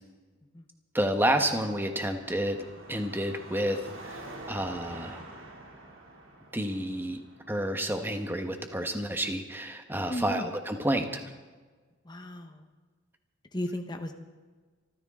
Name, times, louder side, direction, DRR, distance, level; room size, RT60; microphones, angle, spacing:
voice 1, 0.9-2.6 2.9-5.2 6.5-7.2 7.5-11.2, right 1 dB, 10° right, 6 dB, 1.3 m, -30 dB
Car passing by / Traffic noise roadway noise / Engine, 1.5-8.9, right 2 dB, 70° right, 3.0 m, -47 dB
voice 2, 10.1-10.5 12.0-12.6 13.5-14.1, left 1 dB, 20° left, 5 dB, 1.2 m, -35 dB
25.5 x 14.5 x 3.8 m, 1.4 s
head